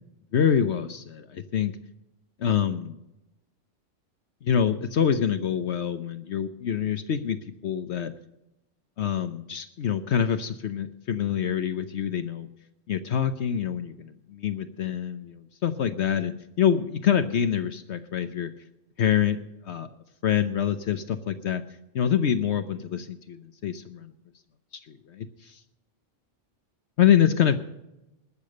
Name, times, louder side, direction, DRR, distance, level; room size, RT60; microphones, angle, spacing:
voice 1, 0.3-1.7 2.4-3.0 4.4-7.4 7.6-8.1 9.0-12.5 12.9-18.5 19.0-19.4 19.6-19.9 20.2-21.6 21.9-24.1 25.1-25.3 27.0-27.6, left 8 dB, 65° left, 10 dB, 1.0 m, -25 dB
20.0 x 6.9 x 6.5 m, 0.90 s
omnidirectional pair, 1.3 m